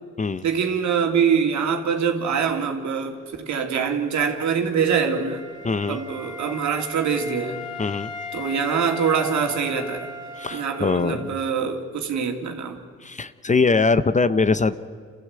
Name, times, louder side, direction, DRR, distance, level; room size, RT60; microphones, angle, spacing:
voice 1, 0.4-5.4 5.9-7.6 8.3-10.1 10.5-12.8, right 6 dB, 65° right, 4 dB, 2.8 m, -24 dB
Wind instrument woodwind instrument, 3.9-11.7, left 4 dB, 70° left, 4.4 m, -38 dB
voice 2, 5.6-6.0 7.8-8.1 10.4-11.4 13.0-14.7, left 4 dB, 25° left, 14 dB, 0.7 m, -22 dB
27.5 x 15.0 x 8.8 m, 2.1 s
cardioid pair, 90°, 30 cm